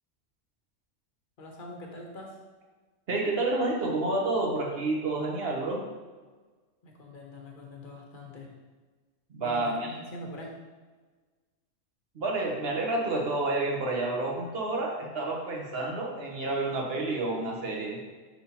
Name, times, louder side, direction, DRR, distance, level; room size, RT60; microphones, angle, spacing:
voice 1, 1.4-2.4 6.8-8.6 9.4-10.5, left 1 dB, 45° left, 0 dB, 1.1 m, -43 dB
voice 2, 3.1-5.8 9.3-9.9 12.1-18.0, right 2 dB, 50° right, -1 dB, 1.2 m, -29 dB
6.0 x 5.5 x 2.9 m, 1.3 s
omnidirectional pair, 1.3 m